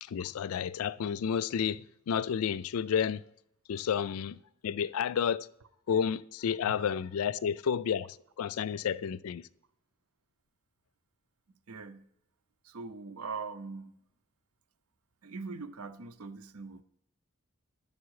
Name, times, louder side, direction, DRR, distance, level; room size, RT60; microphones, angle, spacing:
voice 1, 0.0-3.2 3.7-5.5 5.9-9.5, left 7 dB, 75° left, 0.4 m, -31 dB
voice 2, 11.7-12.1 12.6-14.0 15.2-16.8, right 4 dB, 80° right, 0.7 m, -41 dB
10.5 x 7.0 x 4.8 m
head